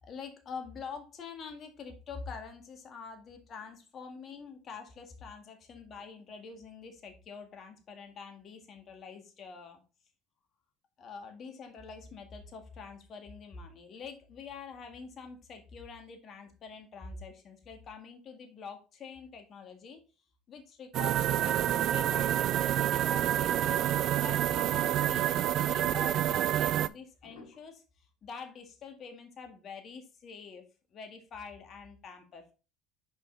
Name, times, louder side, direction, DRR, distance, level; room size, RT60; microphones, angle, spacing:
voice 1, 0.0-9.8 11.0-20.0 20.5-30.6 30.9-32.5, left 5 dB, 45° left, 5 dB, 1.8 m, -46 dB
sound 1, 20.9-26.9, right 12 dB, 55° right, 0.4 m, -28 dB
sound 2, 22.2-23.5 24.3-24.4 24.7-25.3 26.1-26.2 27.2-27.6, left 3 dB, 75° left, 2.2 m, -54 dB
6.2 x 5.2 x 3.8 m, 0.32 s
hypercardioid pair, 75°, 0 cm